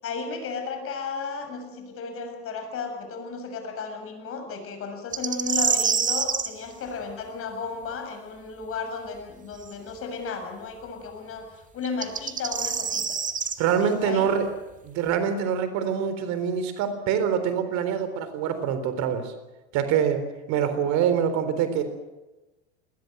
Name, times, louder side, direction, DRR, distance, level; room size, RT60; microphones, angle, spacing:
voice 1, 0.0-13.2 13.8-14.3, left 4 dB, 40° left, 6 dB, 7.1 m, -34 dB
sound 1, 5.1-6.5 9.6-9.7 11.8-13.6, right 6 dB, 25° right, 2.1 m, -26 dB
voice 2, 13.6-14.5 14.8-19.3 19.7-21.8, right 8 dB, 55° right, 10 dB, 3.8 m, -25 dB
21.0 x 21.0 x 7.9 m, 1.1 s
hypercardioid pair, 90°, 34 cm